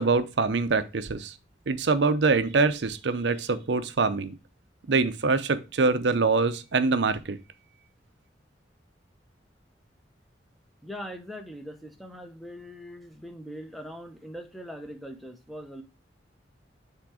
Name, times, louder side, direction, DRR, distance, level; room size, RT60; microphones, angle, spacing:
voice 1, 0.0-1.3 1.7-4.3 4.9-7.4, right 4 dB, 70° right, 12 dB, 0.6 m, -24 dB
voice 2, 10.8-15.8, equal, ahead, 5 dB, 0.9 m, -41 dB
6.0 x 3.7 x 4.9 m, 0.28 s
head